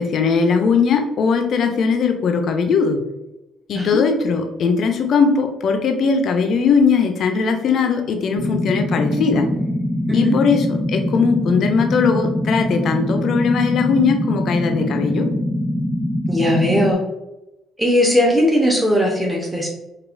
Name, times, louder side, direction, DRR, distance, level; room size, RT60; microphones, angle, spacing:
voice 1, 0.0-3.0 3.7-9.5 10.1-15.3, left 5 dB, 60° left, 5 dB, 0.5 m, -19 dB
sound 1, 8.4-16.9, left 1 dB, 10° left, 0.4 m, -23 dB
voice 2, 16.3-17.0 17.8-19.7, equal, 10° right, -2 dB, 0.9 m, -18 dB
4.0 x 2.4 x 2.5 m, 0.97 s
hypercardioid pair, 60°, 0 cm